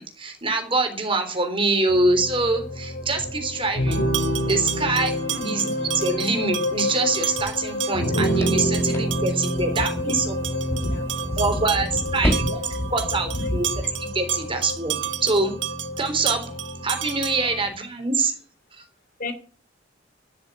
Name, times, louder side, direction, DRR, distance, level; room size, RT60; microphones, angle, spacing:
voice 1, 0.0-4.0 4.5-5.1 5.5-10.4 11.4-12.6 12.9-13.7 14.0-15.6 16.0-16.4 16.8-18.3 18.8-18.9, right 3 dB, 30° right, 3.6 m, -24 dB
sound 1, 1.9-17.7, equal, 85° left, 6.0 m, -28 dB
sound 2, 3.9-17.6, right 12 dB, 70° right, 1.3 m, -33 dB
sound 3, 6.7-13.8, equal, 15° left, 1.9 m, -34 dB
voice 2, 9.6-9.9 10.7-11.6 11.9-12.5 12.8-13.6 14.3-14.4 17.4-17.6 19.2-19.3, equal, 50° left, 2.5 m, -31 dB
11.0 x 10.0 x 8.5 m
head